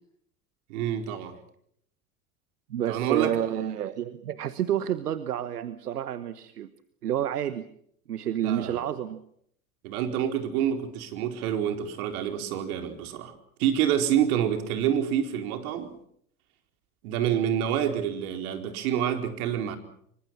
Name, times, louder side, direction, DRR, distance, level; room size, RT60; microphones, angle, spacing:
voice 1, 0.7-1.4 2.9-3.3 8.4-8.8 9.8-13.3 13.6-15.9 17.0-19.8, right 9 dB, 70° right, 6 dB, 4.6 m, -27 dB
voice 2, 2.7-6.7 7.0-7.7 8.1-9.2, right 10 dB, 90° right, 13 dB, 1.2 m, -29 dB
26.0 x 24.5 x 6.0 m, 0.68 s
hypercardioid pair, 85°, 45 cm